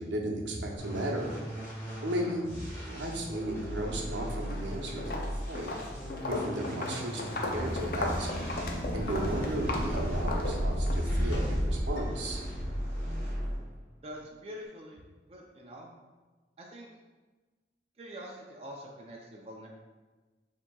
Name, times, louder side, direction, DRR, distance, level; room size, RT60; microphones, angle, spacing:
voice 1, 0.0-1.3 2.0-2.4 2.9-5.8 6.3-8.3 8.9-12.4, right 1 dB, 85° right, 0 dB, 0.7 m, -35 dB
sound 1, 0.8-13.7, equal, 15° left, 1.4 m, -38 dB
Walk footsteps, 4.4-4.7 5.0-11.0, left 2 dB, 50° left, 0.5 m, -36 dB
sound 2, 7.3-12.9, equal, 80° left, 0.8 m, -33 dB
voice 2, 14.0-15.0 15.3-15.9 16.6-16.9 18.0-19.7, equal, 35° right, -1 dB, 0.4 m, -45 dB
6.9 x 2.8 x 2.2 m, 1.3 s
head